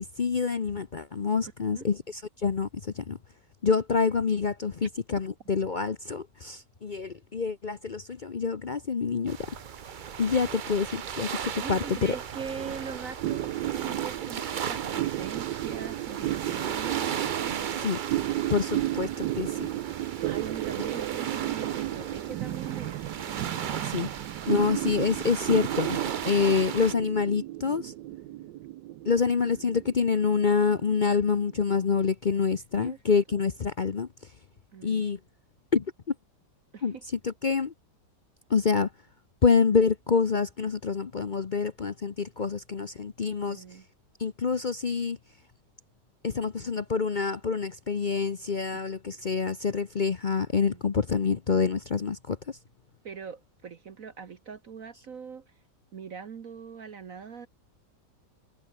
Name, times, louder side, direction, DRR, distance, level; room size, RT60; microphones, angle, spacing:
voice 1, 0.2-3.2 3.6-9.4 10.2-12.1 17.8-18.0 18.5-19.7 23.8-24.1 24.5-27.9 29.1-34.1 34.8-35.2 35.7-35.8 36.8-37.0 37.2-37.7 38.5-38.9 39.4-43.6 44.2-45.2 46.2-52.4, left 5 dB, 45° left, 0.6 m, -27 dB
sound 1, 9.3-26.9, right 7 dB, 70° right, 0.4 m, -36 dB
voice 2, 11.5-17.8 20.3-23.2 29.6-29.8 32.8-33.0 33.3-33.4 34.7-35.1 36.7-37.0 43.5-43.9 50.6-50.8 53.0-55.5 55.9-57.5, right 6 dB, 55° right, 1.5 m, -42 dB
sound 2, 13.2-32.0, right 15 dB, 85° right, 1.3 m, -33 dB
omnidirectional pair, 1.9 m